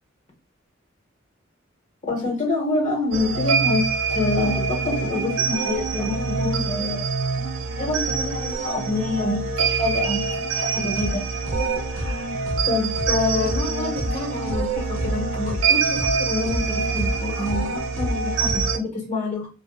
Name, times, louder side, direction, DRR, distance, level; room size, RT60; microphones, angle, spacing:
voice 1, 2.1-3.8 4.1-7.1 7.8-10.2 10.5-11.2 11.9-12.3 12.7-19.5, left 2 dB, 40° left, -1 dB, 0.9 m, -27 dB
sound 1, 3.1-18.8, right 5 dB, 75° right, 0.4 m, -25 dB
sound 2, 11.0-11.1 11.5-11.6 12.0-12.1 12.5-12.6 13.0-13.1 13.5-13.6 14.0-14.1 14.5-14.6 15.0-15.1 15.5-15.6 16.0-16.1 16.5-16.6 17.0-17.1 17.5-17.6 18.0-18.1 18.5-18.6, equal, 30° right, 0.6 m, -27 dB
2.6 x 2.0 x 2.3 m, 0.30 s
head